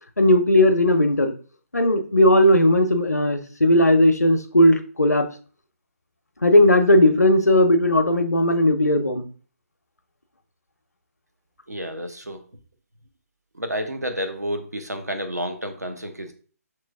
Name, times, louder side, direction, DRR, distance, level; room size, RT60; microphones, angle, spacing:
voice 1, 0.2-1.3 1.7-5.3 6.4-9.2, left 1 dB, 85° left, 8 dB, 0.7 m, -17 dB
voice 2, 11.7-12.4 13.5-16.3, equal, 90° right, 7 dB, 0.9 m, -30 dB
6.1 x 3.1 x 2.3 m, 0.41 s
figure-of-eight pair, 145°, 9 cm